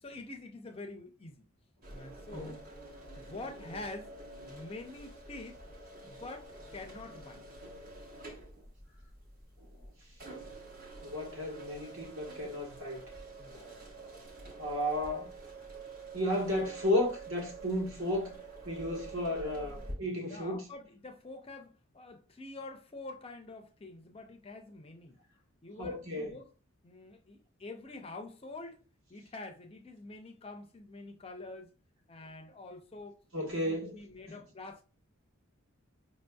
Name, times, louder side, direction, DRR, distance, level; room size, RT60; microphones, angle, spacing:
voice 1, 0.0-1.4 1.9-2.6 3.0-4.1 4.5-5.6 6.1-7.4 13.4-13.8 19.2-25.2 25.6-26.5 26.8-28.8 29.1-31.7 32.1-33.2 33.5-34.8, left 2 dB, 25° left, 0.5 m, -46 dB
sound 1, 1.8-19.9, right 3 dB, 40° right, 1.1 m, -48 dB
voice 2, 11.0-13.0 13.5-13.8 14.6-15.3 16.1-18.3 18.6-20.7 25.8-26.3 33.3-34.0 34.3-34.4, left 1 dB, 65° right, 1.3 m, -33 dB
5.0 x 2.6 x 2.3 m
head